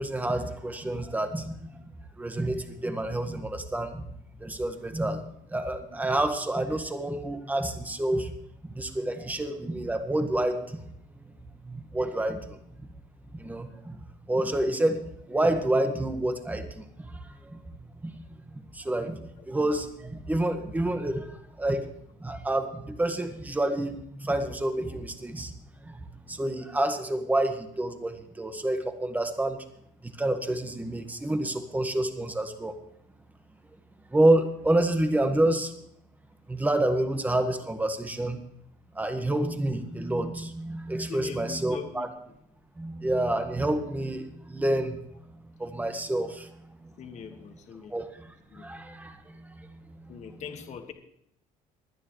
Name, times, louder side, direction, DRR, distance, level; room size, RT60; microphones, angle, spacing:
voice 1, 0.0-1.8 2.2-4.1 4.4-8.3 8.6-10.8 11.2-12.6 13.3-17.7 18.0-18.2 18.7-21.9 22.2-25.5 25.8-29.6 30.0-32.8 34.1-35.7 36.5-38.4 38.9-42.1 42.8-46.9 47.9-50.4, right 1 dB, 10° right, 7 dB, 1.6 m, -29 dB
voice 2, 41.0-42.1 47.0-48.0 48.5-48.7 50.1-50.9, left 7 dB, 45° left, 5 dB, 1.8 m, -42 dB
24.0 x 9.7 x 3.2 m, 0.74 s
cardioid pair, 125°, 16 cm